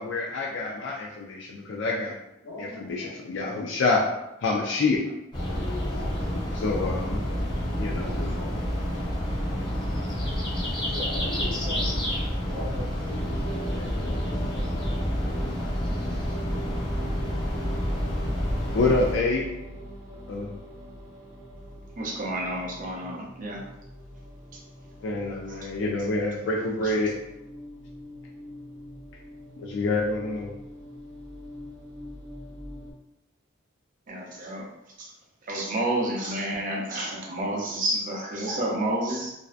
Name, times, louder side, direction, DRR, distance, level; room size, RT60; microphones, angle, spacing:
voice 1, 0.0-2.1 2.6-4.0 4.4-5.0 6.5-7.2 7.7-8.1 18.7-19.5 20.3-20.5 25.0-27.2 29.6-30.5, left 3 dB, 65° left, -2 dB, 0.3 m, -27 dB
voice 2, 2.4-3.6 5.4-6.4 7.2-7.4 7.9-8.7 10.9-14.6, left 2 dB, 80° left, -6 dB, 1.0 m, -40 dB
sound 1, 5.3-19.1, equal, 25° left, 0.9 m, -29 dB
sound 2, 13.2-32.9, equal, 85° right, 0.7 m, -39 dB
voice 3, 22.0-23.6 25.5-25.7 34.1-34.6 35.0-35.1 35.5-39.3, right 1 dB, 40° right, -2 dB, 0.5 m, -30 dB
2.5 x 2.2 x 2.4 m, 0.90 s
head